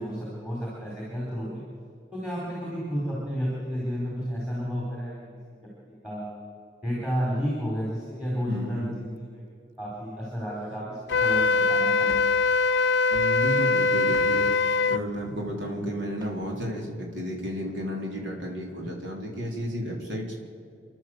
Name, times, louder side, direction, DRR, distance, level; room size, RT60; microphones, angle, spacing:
voice 1, 0.0-1.6 2.1-5.1 5.6-6.3 6.8-9.2 9.8-12.2, equal, 5° right, -5 dB, 4.6 m, -31 dB
voice 2, 8.5-8.9 13.1-14.5 14.9-20.4, equal, 85° right, -1 dB, 4.3 m, -32 dB
sound 1, 11.0-16.7, equal, 20° right, 1.7 m, -49 dB
Wind instrument woodwind instrument, 11.1-15.0, left 4 dB, 80° left, 0.5 m, -22 dB
30.0 x 11.5 x 8.1 m, 2.4 s
head